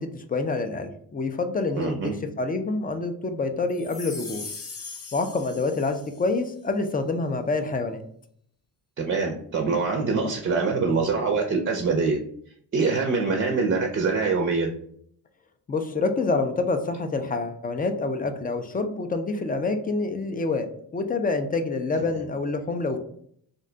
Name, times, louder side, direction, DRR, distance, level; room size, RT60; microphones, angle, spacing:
voice 1, 0.0-2.1 2.4-4.4 5.1-8.0 15.7-20.7 20.9-23.0, left 3 dB, 25° left, 7 dB, 0.3 m, -27 dB
voice 2, 1.8-2.1 9.0-12.2 12.7-14.7, right 4 dB, 35° right, 1 dB, 0.5 m, -24 dB
sound 1, 3.8-6.3, left 4 dB, 40° left, 0.8 m, -40 dB
2.5 x 2.2 x 3.7 m, 0.64 s
cardioid pair, 100°, 39 cm